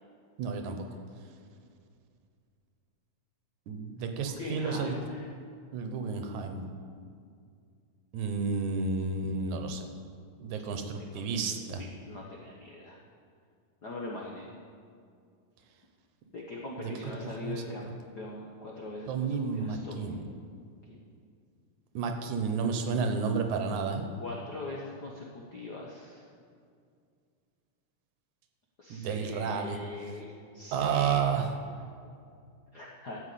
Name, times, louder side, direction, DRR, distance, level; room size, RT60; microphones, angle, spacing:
voice 1, 0.4-0.8 3.7-4.9 5.7-6.7 8.1-9.9 10.4-11.8 16.8-16.9 17.4-17.9 19.1-20.2 22.0-24.1 28.9-29.8 30.7-31.5, right 5 dB, 80° right, 6 dB, 2.3 m, -31 dB
voice 2, 4.2-5.3 11.0-13.0 13.8-14.5 16.3-20.2 20.9-21.0 24.2-26.2 28.8-30.2 30.5-31.1 32.7-33.2, left 2 dB, 65° left, -3 dB, 1.0 m, -42 dB
12.5 x 5.8 x 8.3 m, 2.3 s
omnidirectional pair, 3.4 m